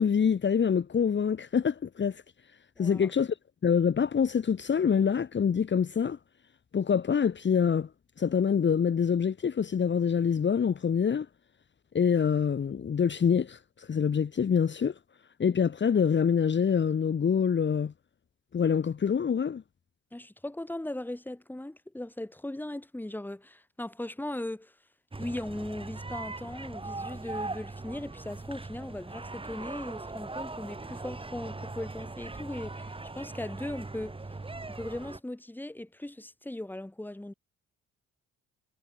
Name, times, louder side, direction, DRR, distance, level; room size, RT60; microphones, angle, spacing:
voice 1, 0.0-2.2 2.8-3.3 3.6-6.2 6.7-7.9 8.2-11.3 11.9-14.9 15.4-17.9 18.5-19.6, left 7 dB, 40° left, 1.4 m, -25 dB
voice 2, 20.1-24.7 25.2-34.2 34.7-37.3, left 1 dB, 5° left, 2.1 m, -38 dB
sound 1, 25.1-35.2, right 3 dB, 20° right, 2.5 m, -40 dB
cardioid pair, 90°, 30 cm